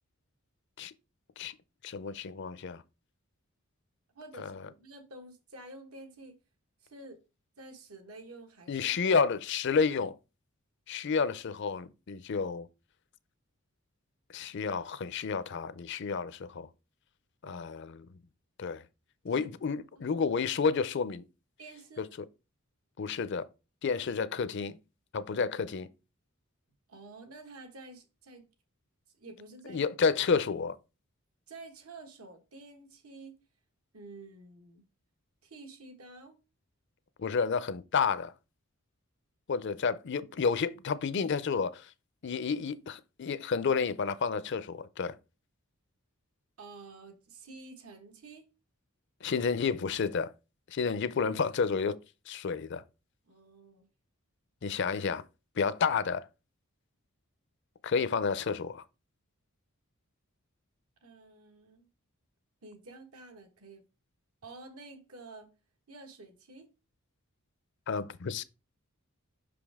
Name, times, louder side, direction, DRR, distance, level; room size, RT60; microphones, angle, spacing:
voice 1, 1.8-2.8 4.4-4.6 8.7-10.2 10.9-12.7 14.3-16.7 17.4-18.1 18.6-18.8 19.2-21.2 22.0-22.1 23.0-23.5 23.8-24.8 25.1-25.9 29.7-30.8 37.2-38.3 39.5-41.9 42.2-45.2 49.2-50.3 50.7-52.0 52.3-52.8 54.6-55.2 55.6-56.3 57.8-58.8 67.9-68.4, left 5 dB, 55° left, 0.5 m, -30 dB
voice 2, 4.1-6.4 6.8-7.2 7.6-8.9 17.4-17.7 19.3-19.5 20.0-20.1 21.6-22.1 26.9-28.5 29.2-29.8 31.5-33.3 33.9-34.8 35.4-36.4 46.6-48.5 53.3-53.9 61.0-61.9 62.6-63.8 64.4-65.5 65.9-66.7, right 2 dB, 80° right, 1.4 m, -49 dB
5.8 x 5.1 x 3.5 m
head